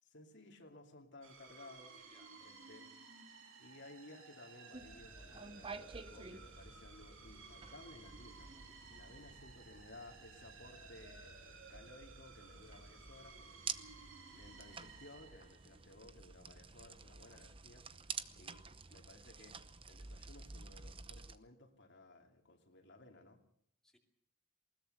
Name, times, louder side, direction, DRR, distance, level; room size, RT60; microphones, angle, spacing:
voice 1, 0.0-2.0 2.4-2.9 3.6-13.7 14.3-18.6 18.9-19.6 19.9-23.5, left 2 dB, 55° left, 3 dB, 2.7 m, -58 dB
sound 1, 1.2-16.0, right 4 dB, 65° right, 3.4 m, -57 dB
voice 2, 2.0-2.9 14.3-14.5 18.4-18.5 23.8-24.0, left 1 dB, 5° left, 0 dB, 2.6 m, -71 dB
sound 2, 4.7-21.4, right 5 dB, 25° right, 0.8 m, -51 dB
21.0 x 20.0 x 6.7 m, 0.64 s
head